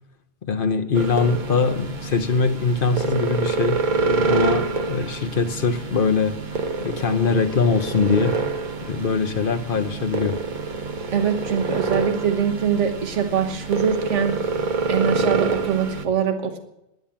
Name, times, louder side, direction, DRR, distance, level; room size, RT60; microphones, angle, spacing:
voice 1, 0.4-6.4 6.8-8.5 8.9-10.4, left 5 dB, 50° left, 0.9 m, -22 dB
sound 1, 1.0-16.1, right 4 dB, 45° right, 1.1 m, -27 dB
voice 2, 11.1-14.5 14.9-16.6, right 7 dB, 80° right, 1.6 m, -23 dB
11.0 x 10.0 x 7.2 m
omnidirectional pair, 1.2 m